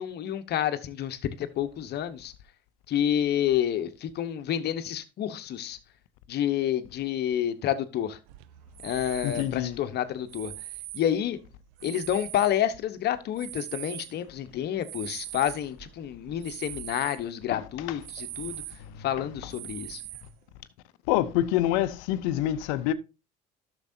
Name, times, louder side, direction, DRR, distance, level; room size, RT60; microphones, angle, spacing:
voice 1, 0.0-2.3 2.9-5.8 6.3-8.2 8.8-10.5 10.9-11.4 11.8-18.6 19.0-20.0, left 10 dB, 55° left, 1.0 m, -29 dB
sound 1, 8.3-12.9 13.3-17.2 17.6-17.7 18.0-19.0 19.5-20.5, right 17 dB, 75° right, 0.5 m, -41 dB
voice 2, 9.2-9.8 17.5-18.0 21.1-22.9, left 13 dB, 75° left, 0.7 m, -26 dB
11.5 x 6.8 x 2.7 m
hypercardioid pair, 75°, 20 cm